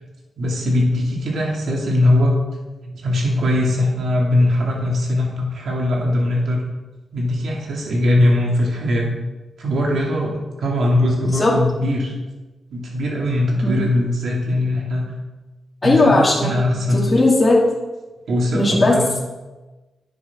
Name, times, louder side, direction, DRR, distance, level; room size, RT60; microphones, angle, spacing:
voice 1, 0.4-2.4 2.9-6.6 7.1-9.1 9.6-12.1 12.7-15.1 15.8-17.1 18.3-19.1, left 1 dB, 70° right, -2 dB, 2.6 m, -20 dB
voice 2, 15.8-16.6 16.9-17.6 18.5-18.9, left 2 dB, 25° left, -4 dB, 2.5 m, -16 dB
10.0 x 8.5 x 3.7 m, 1.2 s
cardioid pair, 100°, 0 cm